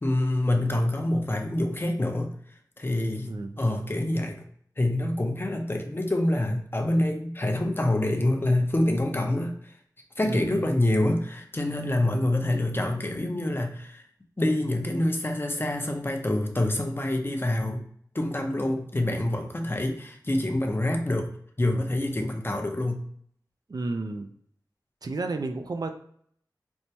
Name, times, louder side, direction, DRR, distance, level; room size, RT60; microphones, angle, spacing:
voice 1, 0.0-2.3 2.8-4.4 4.8-9.5 10.2-14.0 14.4-17.8 18.1-21.3 21.6-23.0, left 1 dB, 30° left, 3 dB, 0.6 m, -26 dB
voice 2, 3.2-3.6 10.2-10.7 23.7-24.3 25.0-25.9, right 3 dB, 60° right, 6 dB, 0.4 m, -32 dB
4.4 x 2.2 x 2.8 m, 0.64 s
wide cardioid pair, 45°, 8 cm